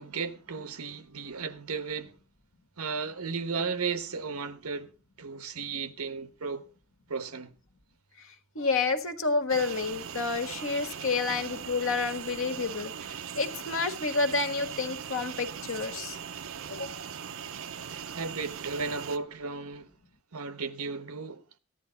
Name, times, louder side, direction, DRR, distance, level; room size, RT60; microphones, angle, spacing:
voice 1, 0.0-2.2 2.8-4.9 5.2-6.7 7.1-7.6 10.9-11.5 17.9-19.9 20.3-21.4, right 5 dB, 85° right, 1.1 m, -35 dB
voice 2, 8.5-16.2 16.7-16.9, left 4 dB, 65° left, 1.6 m, -29 dB
sound 1, 9.5-19.2, right 8 dB, 65° right, 0.6 m, -40 dB
14.5 x 10.5 x 4.1 m
head